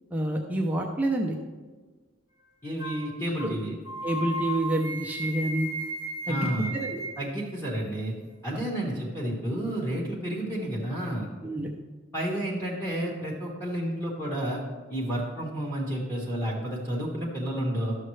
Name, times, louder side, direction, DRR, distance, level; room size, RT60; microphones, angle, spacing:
voice 1, 0.1-1.3 3.4-3.5 4.0-5.7 6.3-6.5 6.7-7.0 8.5-8.6 11.4-11.7, right 1 dB, 10° right, 0 dB, 0.5 m, -28 dB
voice 2, 2.6-3.7 6.3-6.8 7.2-8.1 8.4-11.3 12.1-14.6 14.9-18.0, right 1 dB, 10° left, -5 dB, 1.3 m, -31 dB
sound 1, 2.8-3.1 3.4-3.6 3.8-7.2, right 1 dB, 55° left, 2.2 m, -34 dB
12.0 x 6.5 x 3.2 m, 1.4 s
head